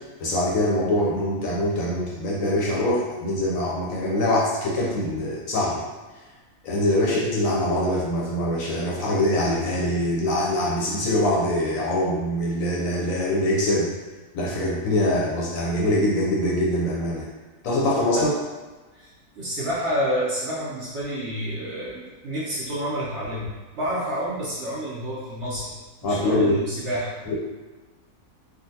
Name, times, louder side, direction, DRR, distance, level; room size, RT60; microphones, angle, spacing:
voice 1, 0.2-5.8 6.6-13.9 14.3-17.3 17.6-18.2 26.0-26.6 27.3-27.4, left 1 dB, 70° left, -4 dB, 0.9 m, -23 dB
voice 2, 19.3-25.7 26.0-27.1, equal, 55° right, -8 dB, 0.8 m, -29 dB
3.7 x 2.3 x 2.7 m, 1.2 s
omnidirectional pair, 1.7 m